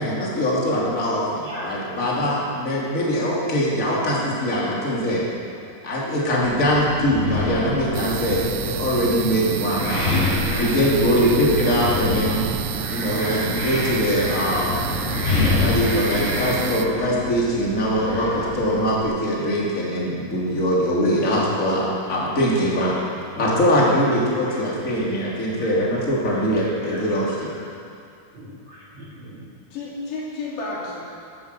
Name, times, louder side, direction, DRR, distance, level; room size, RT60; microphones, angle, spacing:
voice 1, 0.0-5.2 5.8-10.1 10.6-12.4 12.9-14.7 15.6-21.8 22.1-22.9 23.4-27.5, equal, 25° left, -5 dB, 2.6 m, -22 dB
Wind, 6.4-19.0, left 2 dB, 65° left, 6.1 m, -27 dB
sound 1, 7.9-16.9, right 11 dB, 90° right, 2.7 m, -30 dB
voice 2, 11.8-12.5 29.7-31.0, left 3 dB, 85° left, -6 dB, 5.3 m, -32 dB
voice 3, 28.3-29.4, right 2 dB, 40° right, -5 dB, 2.1 m, -36 dB
15.0 x 10.5 x 6.7 m, 2.4 s
omnidirectional pair, 4.7 m